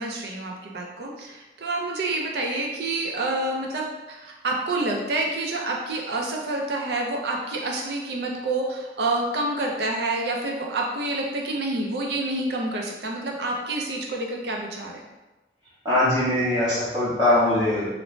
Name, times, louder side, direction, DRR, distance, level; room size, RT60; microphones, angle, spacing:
voice 1, 0.0-15.0, right 2 dB, 65° right, 0 dB, 0.5 m, -28 dB
voice 2, 15.8-17.9, left 1 dB, 20° right, -12 dB, 0.6 m, -21 dB
2.5 x 2.1 x 3.1 m, 1.1 s
head